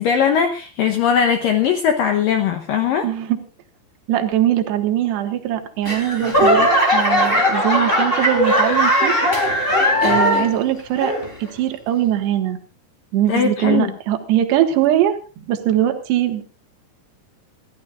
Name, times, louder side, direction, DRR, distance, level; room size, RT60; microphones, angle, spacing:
voice 1, 0.0-3.1 13.3-13.9, left 7 dB, 75° left, 6 dB, 2.1 m, -19 dB
voice 2, 3.0-3.4 4.1-9.2 10.0-12.6 13.1-16.4, right 12 dB, 75° right, 5 dB, 3.6 m, -21 dB
Laughter / Clapping / Crowd, 5.8-10.6 11.0-11.5 12.1-12.2, equal, 15° left, 2.9 m, -18 dB
28.0 x 13.5 x 2.5 m, 0.33 s
omnidirectional pair, 5.1 m